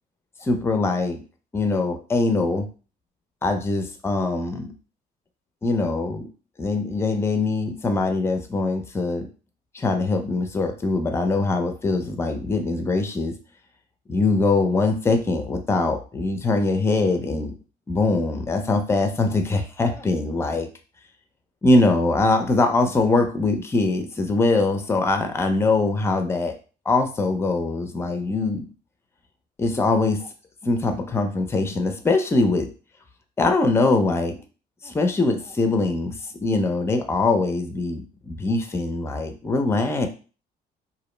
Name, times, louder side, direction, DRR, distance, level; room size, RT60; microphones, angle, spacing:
voice 1, 0.4-1.2 1.5-2.7 3.4-4.7 5.6-6.3 6.6-9.3 9.7-13.3 14.1-17.5 17.9-20.7 21.6-26.5 26.9-28.7 29.6-30.3 30.6-32.7 33.4-34.4 34.8-40.1, left 3 dB, 15° left, 6 dB, 0.4 m, -22 dB
2.4 x 2.0 x 3.1 m, 0.36 s
cardioid pair, 110°, 17 cm